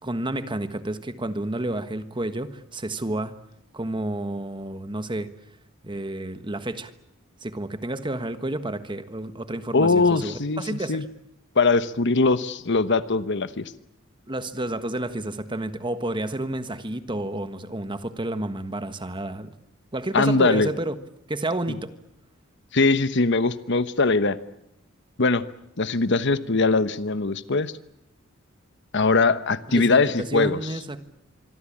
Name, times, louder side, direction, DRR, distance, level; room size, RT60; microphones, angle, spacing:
voice 1, 0.0-3.3 3.7-5.3 5.8-6.9 7.4-11.0 14.3-19.5 19.9-20.9 21.3-21.9 29.7-31.0, right 1 dB, 25° right, 11 dB, 1.4 m, -30 dB
voice 2, 9.7-10.6 10.9-11.0 11.6-13.7 20.1-20.7 21.7-21.8 22.7-24.4 25.2-25.4 25.8-27.7 28.9-30.6, left 3 dB, 60° left, 13 dB, 1.1 m, -21 dB
26.0 x 24.0 x 8.7 m, 0.79 s
head